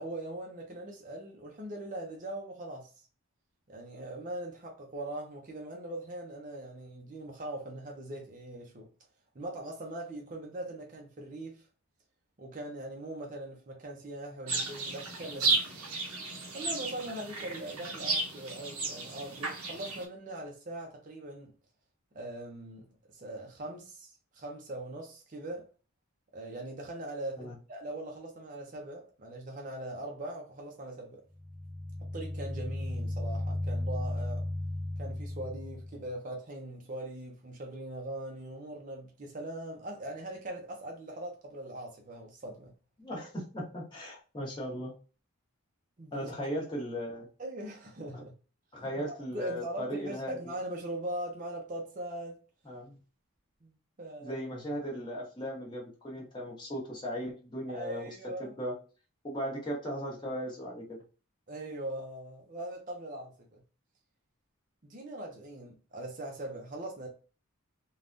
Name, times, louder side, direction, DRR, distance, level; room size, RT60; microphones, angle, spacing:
voice 1, 0.0-3.0 3.7-8.9 9.3-11.6 12.4-15.6 16.5-21.5 22.1-25.7 26.3-31.2 32.1-34.5 35.0-42.7 46.0-46.3 47.4-48.3 48.8-48.9 49.3-52.4 53.6-54.4 57.7-58.5 61.5-63.6 64.8-67.1, right 1 dB, 35° right, 0.6 m, -41 dB
sound 1, 14.5-20.0, right 3 dB, 80° right, 0.8 m, -33 dB
sound 2, 31.3-36.1, left 1 dB, 40° left, 1.3 m, -35 dB
voice 2, 43.0-44.9 46.1-47.3 48.1-48.2 48.7-50.4 52.7-53.0 54.2-58.1 58.4-58.7 59.2-61.0, equal, 20° left, 1.0 m, -37 dB
3.4 x 2.3 x 2.5 m
head